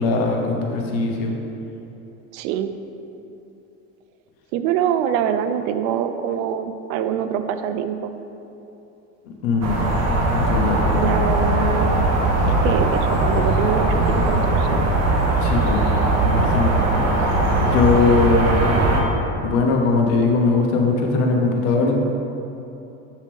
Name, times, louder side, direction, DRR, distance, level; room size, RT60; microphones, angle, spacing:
voice 1, 0.0-1.4 9.4-9.8 10.3-10.8 15.4-15.8 16.2-16.7 17.6-18.7 19.4-22.0, left 4 dB, 80° left, 1 dB, 1.2 m, -20 dB
voice 2, 2.3-2.7 4.5-8.1 10.9-12.1 12.6-14.9, right 9 dB, 75° right, 10 dB, 0.6 m, -24 dB
sound 1, 9.6-19.0, right 2 dB, 40° right, 1.2 m, -19 dB
8.1 x 5.5 x 3.5 m, 2.9 s
supercardioid pair, 110°, 38 cm